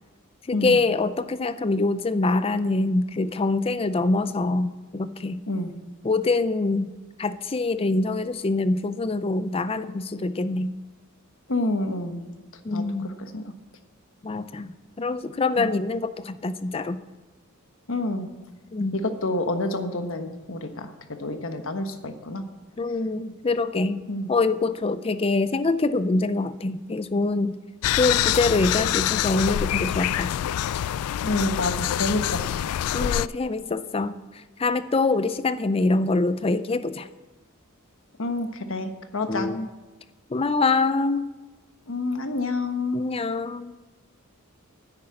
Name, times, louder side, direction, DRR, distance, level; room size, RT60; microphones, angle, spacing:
voice 1, 0.5-5.4 6.0-6.9 7.2-10.7 12.6-13.1 14.2-14.7 15.0-17.0 18.7-19.0 22.8-24.0 24.3-27.6 28.0-30.3 32.9-37.1 39.3-39.7 40.3-41.3 42.9-43.7, left 3 dB, 25° left, 13 dB, 0.5 m, -25 dB
voice 2, 11.5-12.3 12.7-12.8 13.2-13.5 15.6-15.7 17.9-18.3 18.9-20.9 21.2-22.4 24.1-24.3 31.2-32.7 38.2-39.5 41.9-43.0, left 2 dB, 65° left, 7 dB, 1.3 m, -28 dB
sound 1, 27.8-33.3, left 11 dB, 90° left, 0.3 m, -25 dB
9.9 x 9.8 x 7.7 m, 1.2 s
head